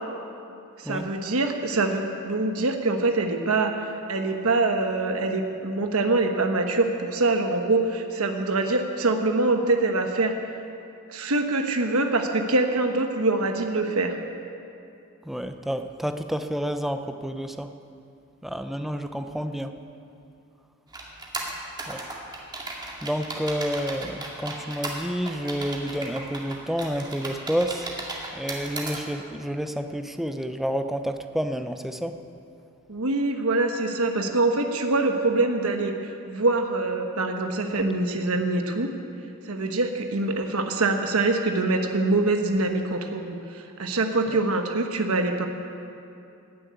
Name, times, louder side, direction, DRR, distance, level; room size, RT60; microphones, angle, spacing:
voice 1, 0.8-10.5 11.1-14.1 32.9-38.9 39.5-45.5, right 2 dB, 70° right, 5 dB, 1.1 m, -24 dB
voice 2, 15.3-17.7 18.4-19.7 21.9-22.0 23.0-27.9 28.3-32.2, equal, ahead, 7 dB, 0.6 m, -29 dB
sound 1, 20.9-29.0, right 2 dB, 20° right, 2.1 m, -35 dB
16.0 x 7.7 x 9.6 m, 2.7 s
head